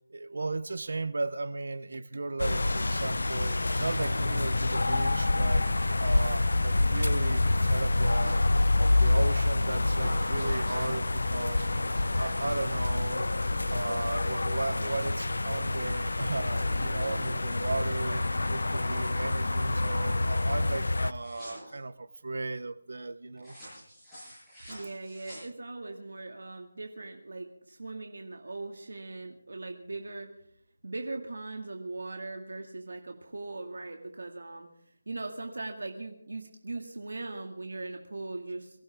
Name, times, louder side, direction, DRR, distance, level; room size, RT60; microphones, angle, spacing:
voice 1, 0.1-5.7 5.9-11.7 12.1-13.3 13.7-18.2 18.5-23.5, right 3 dB, 50° right, 16 dB, 0.8 m, -35 dB
Suburb fall day near road, 2.4-21.1, left 2 dB, 90° left, 0.8 m, -27 dB
sound 1, 3.1-16.1, right 1 dB, 20° right, 3.2 m, -51 dB
sound 2, 8.2-8.4 8.9-9.3 9.9-16.0 16.3-17.0 17.3-19.2 19.7-20.0 20.3-20.5 21.2-21.8 23.4-25.9, equal, ahead, 7.3 m, -49 dB
voice 2, 24.7-30.3 30.8-34.7 35.1-38.8, right 2 dB, 70° right, 3 dB, 2.1 m, -40 dB
24.0 x 15.5 x 3.6 m, 0.67 s
figure-of-eight pair, 180°, 0 cm